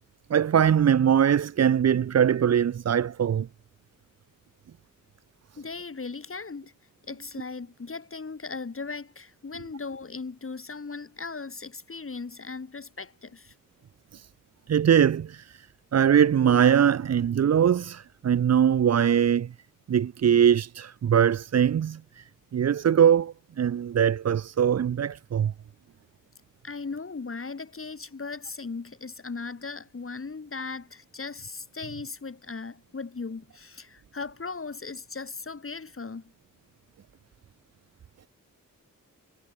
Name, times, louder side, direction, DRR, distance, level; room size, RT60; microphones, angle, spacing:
voice 1, 0.3-3.5 14.1-14.3 14.7-15.7 15.9-19.5 19.9-22.2 22.5-25.5, right 8 dB, 50° right, 0.5 m, -22 dB
voice 2, 5.6-6.7 7.1-13.5 26.6-36.2, left 4 dB, 40° left, 2.0 m, -38 dB
wide cardioid pair, 80°, 34 cm